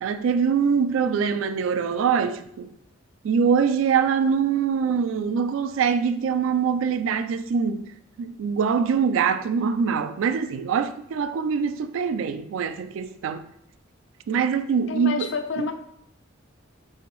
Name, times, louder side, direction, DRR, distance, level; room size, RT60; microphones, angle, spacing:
voice 1, 0.0-2.7 3.2-7.9 8.2-13.4 14.3-15.3, right 6 dB, 80° right, 0.3 m, -23 dB
voice 2, 14.9-15.7, left 4 dB, 60° left, 0.4 m, -28 dB
5.4 x 2.6 x 3.2 m
head